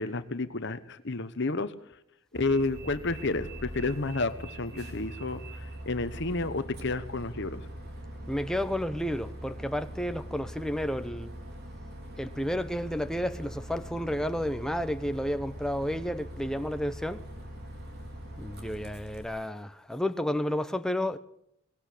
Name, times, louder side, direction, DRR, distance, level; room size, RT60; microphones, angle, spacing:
voice 1, 0.0-1.7 2.4-5.4 5.9-7.6, left 3 dB, 50° left, 1.1 m, -30 dB
Bus, 2.3-19.2, right 1 dB, 50° right, 4.8 m, -42 dB
voice 2, 8.3-11.3 12.2-17.3 18.4-21.2, equal, 5° left, 1.0 m, -31 dB
23.0 x 19.0 x 8.5 m
head